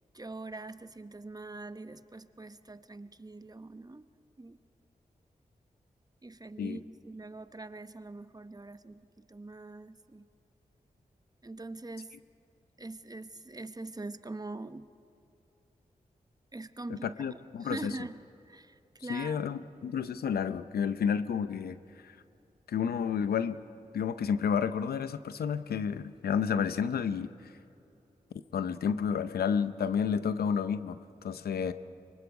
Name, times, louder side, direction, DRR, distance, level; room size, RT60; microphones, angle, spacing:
voice 1, 0.1-4.1 4.4-4.6 6.2-10.3 11.4-12.1 12.8-14.9 16.5-19.4, right 2 dB, 25° right, 12 dB, 0.9 m, -43 dB
voice 2, 17.0-17.9 19.1-21.8 22.0-22.2 22.7-23.6 23.9-27.3 28.5-31.7, left 7 dB, 85° left, 13 dB, 0.7 m, -31 dB
24.5 x 23.0 x 4.8 m, 2.8 s
cardioid pair, 40°, 16 cm